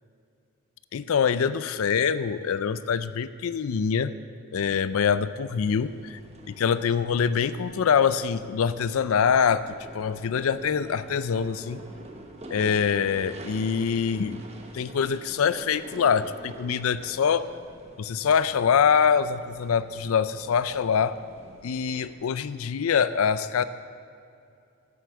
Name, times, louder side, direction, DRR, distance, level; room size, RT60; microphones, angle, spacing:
voice 1, 0.9-4.1 4.5-6.2 6.5-11.8 12.5-14.4 14.7-17.4 18.0-21.1 21.6-23.6, left 7 dB, 75° left, 14 dB, 0.4 m, -24 dB
sound 1, 5.5-22.1, right 1 dB, 30° right, 1.0 m, -46 dB
11.0 x 7.8 x 6.8 m, 2.5 s
head